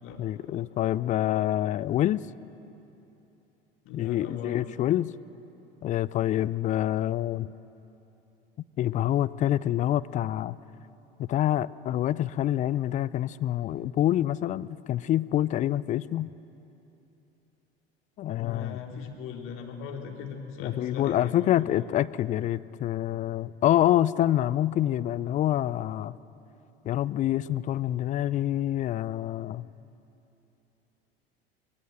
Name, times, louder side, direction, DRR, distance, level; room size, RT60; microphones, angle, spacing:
voice 1, 0.2-2.3 3.9-5.1 5.8-7.5 8.8-10.6 11.2-16.3 18.2-18.8 20.6-26.1 26.8-29.7, left 12 dB, 25° left, 17 dB, 0.4 m, -26 dB
voice 2, 3.8-4.6 18.3-21.5, left 6 dB, 45° left, 2 dB, 3.0 m, -39 dB
23.5 x 19.5 x 7.9 m, 2.9 s
figure-of-eight pair, 75°, 31 cm